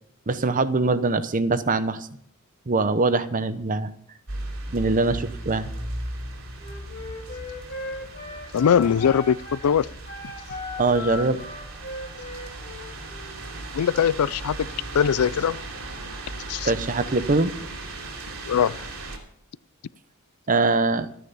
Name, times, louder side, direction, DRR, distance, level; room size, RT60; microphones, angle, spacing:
voice 1, 0.3-2.1 2.7-3.9 4.7-5.7 10.8-11.4 16.6-17.5 20.5-21.1, right 3 dB, 35° right, 0.8 m, -22 dB
sound 1, 4.3-19.2, right 2 dB, 65° right, 3.2 m, -37 dB
Wind instrument woodwind instrument, 6.6-9.7 10.0-13.4, left 2 dB, 45° left, 2.9 m, -38 dB
voice 2, 8.5-9.9 13.7-14.6 14.9-15.6 16.5-16.7 18.5-18.9, left 8 dB, 85° left, 0.4 m, -21 dB
14.0 x 10.0 x 5.5 m
head